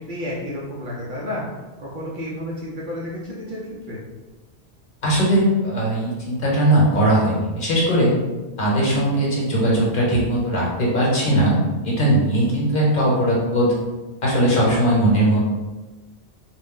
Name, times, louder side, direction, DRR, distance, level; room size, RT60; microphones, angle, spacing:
voice 1, 0.0-1.5 1.8-4.0, left 1 dB, 55° right, -5 dB, 0.7 m, -31 dB
voice 2, 5.0-8.2 8.6-11.6 11.8-13.7 14.2-15.5, right 1 dB, 55° left, -5 dB, 1.1 m, -19 dB
2.5 x 2.0 x 3.6 m, 1.2 s
omnidirectional pair, 1.1 m